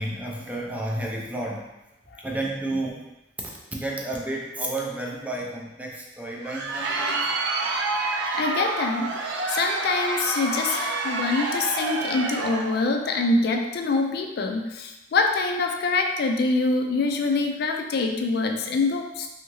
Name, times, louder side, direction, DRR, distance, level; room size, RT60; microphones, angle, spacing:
voice 1, 0.0-1.7 2.2-3.0 3.7-7.2, right 1 dB, 10° right, -2 dB, 0.4 m, -31 dB
Crowd, 6.3-12.8, right 3 dB, 85° right, 0.4 m, -28 dB
voice 2, 8.4-19.3, left 3 dB, 60° left, 3 dB, 0.3 m, -25 dB
2.8 x 2.8 x 2.6 m, 0.97 s
head